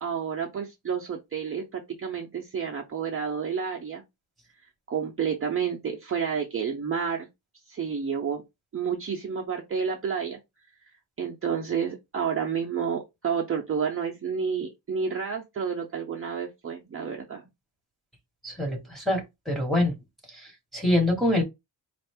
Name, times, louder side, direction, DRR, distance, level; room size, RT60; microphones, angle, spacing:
voice 1, 0.0-4.0 4.9-7.3 7.7-8.4 8.7-10.4 11.2-17.4, right 6 dB, 30° right, 0.5 m, -30 dB
voice 2, 18.4-19.9 20.3-21.4, left 1 dB, ahead, 1.1 m, -25 dB
4.2 x 2.5 x 3.4 m
wide cardioid pair, 160°, 44 cm